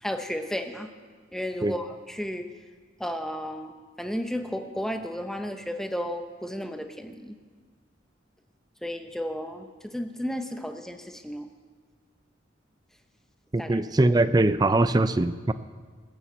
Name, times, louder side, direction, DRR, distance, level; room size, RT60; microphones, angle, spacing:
voice 1, 0.0-0.9 1.3-2.5 3.0-7.4 8.8-11.5 13.6-13.8, equal, ahead, 6 dB, 0.8 m, -33 dB
voice 2, 13.5-15.5, right 2 dB, 20° right, 13 dB, 0.4 m, -22 dB
19.5 x 7.0 x 8.1 m, 1.5 s
head